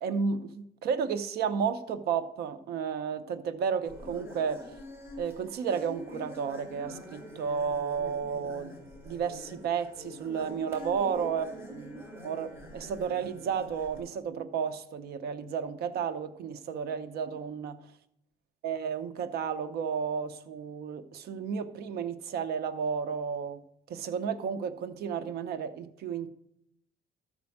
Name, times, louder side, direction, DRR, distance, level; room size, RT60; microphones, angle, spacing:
voice 1, 0.0-4.7 5.2-8.7 9.0-17.8 18.6-23.6 23.9-26.3, right 6 dB, 70° right, 11 dB, 0.8 m, -32 dB
sound 1, 3.8-14.0, left 1 dB, 15° right, 3.9 m, -45 dB
12.5 x 4.3 x 7.1 m, 0.79 s
cardioid pair, 110°, 17 cm